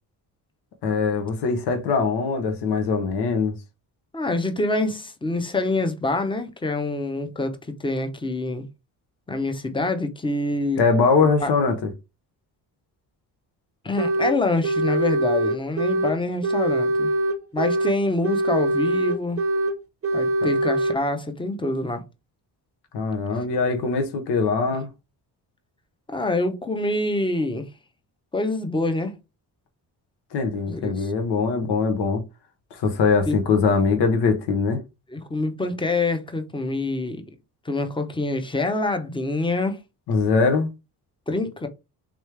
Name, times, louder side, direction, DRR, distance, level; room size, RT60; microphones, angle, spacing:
voice 1, 0.8-3.6 10.8-11.9 20.4-20.5 22.9-24.9 30.3-32.2 32.7-34.8 40.1-40.7, left 4 dB, 75° left, 1.0 m, -22 dB
voice 2, 4.1-8.7 9.3-10.8 11.4-11.5 13.8-17.1 17.5-19.4 20.1-22.0 26.1-27.7 28.3-29.1 30.7-31.1 33.2-33.4 35.1-37.2 37.6-39.8 41.3-41.7, left 2 dB, 10° left, 0.7 m, -26 dB
sound 1, 14.0-14.4 14.6-16.1 16.4-18.0 18.2-19.8 20.0-21.0, right 1 dB, 35° right, 0.7 m, -23 dB
3.6 x 3.1 x 3.2 m
cardioid pair, 95°, 41 cm